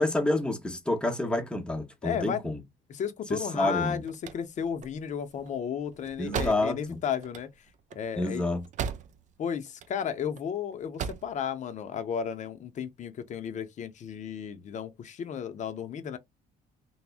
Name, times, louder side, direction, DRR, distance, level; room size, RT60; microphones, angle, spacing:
voice 1, 0.0-2.6 3.3-4.0 6.2-7.0 8.2-8.6, left 2 dB, 5° left, 0.7 m, -28 dB
voice 2, 2.0-2.4 2.9-7.5 7.9-8.4 9.4-16.2, left 8 dB, 45° left, 0.6 m, -33 dB
sound 1, 3.8-9.4 9.7-10.4 10.8-11.4, right 7 dB, 45° right, 0.4 m, -37 dB
3.4 x 2.1 x 2.4 m
cardioid pair, 110°, 17 cm